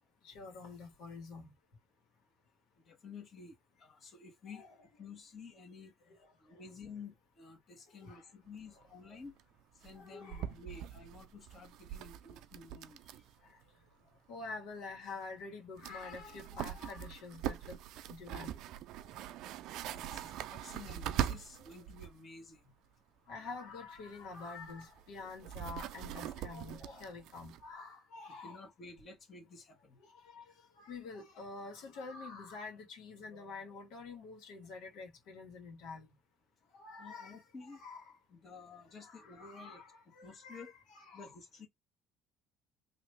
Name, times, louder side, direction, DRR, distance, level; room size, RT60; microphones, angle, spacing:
voice 1, 0.2-1.5 4.5-4.7 7.9-8.2 9.9-10.4 13.4-13.6 14.3-17.8 18.1-18.6 18.9-19.2 19.9-20.2 23.3-28.6 30.0-36.1 36.7-37.4 37.8-38.1 39.0-39.9 40.1-41.3, left 4 dB, 80° left, 1.6 m, -47 dB
voice 2, 2.8-4.7 5.0-5.9 6.4-9.3 9.8-13.3 19.9-22.7 28.3-30.0 37.0-37.8 38.3-40.7 41.1-41.7, left 4 dB, 40° left, 1.5 m, -52 dB
sound 1, 8.5-8.6 8.8-8.9 9.2-9.4 9.8-13.4 13.6-13.7 15.4-15.5 15.8-22.2 24.0-27.7, right 11 dB, 70° right, 0.4 m, -42 dB
3.1 x 2.7 x 3.2 m
cardioid pair, 105°, 0 cm